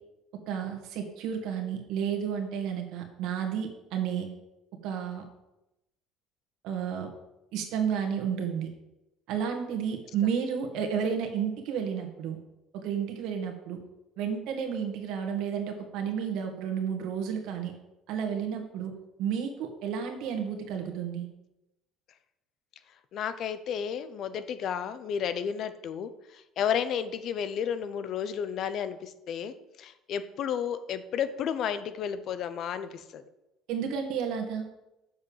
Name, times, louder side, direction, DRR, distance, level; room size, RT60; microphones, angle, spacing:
voice 1, 0.5-4.3 4.8-5.2 6.6-7.1 7.5-8.7 9.3-12.4 12.7-13.8 14.2-17.7 18.1-18.9 19.2-21.3 33.7-34.7, right 7 dB, 70° right, 4 dB, 1.8 m, -31 dB
voice 2, 23.1-33.2, left 8 dB, 55° left, 12 dB, 0.7 m, -32 dB
6.9 x 5.4 x 7.3 m, 0.92 s
cardioid pair, 105°, 0 cm